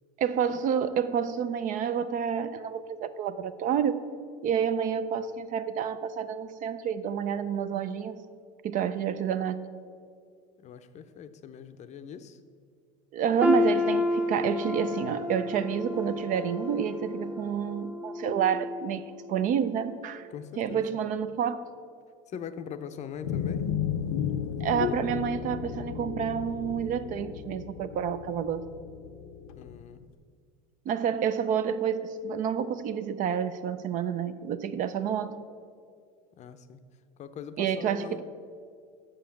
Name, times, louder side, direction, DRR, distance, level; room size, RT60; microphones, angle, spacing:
voice 1, 0.2-4.0 4.4-8.2 8.6-9.6 13.1-19.0 19.3-20.3 20.6-21.7 24.6-28.6 30.9-35.4 37.6-38.2, right 8 dB, 50° right, 0.5 m, -29 dB
voice 2, 10.6-12.4 20.3-20.8 22.3-23.6 29.5-30.0 36.4-36.8 37.2-38.2, left 8 dB, 40° left, 0.5 m, -42 dB
Wind instrument woodwind instrument, 13.2-17.8, right 3 dB, 25° right, 1.3 m, -51 dB
sound 1, 13.4-19.4 19.8-20.0 20.7-20.8, left 2 dB, 10° right, 0.8 m, -30 dB
sound 2, 23.2-29.8, left 8 dB, 85° left, 0.6 m, -34 dB
6.7 x 5.6 x 7.1 m
supercardioid pair, 95°, 18 cm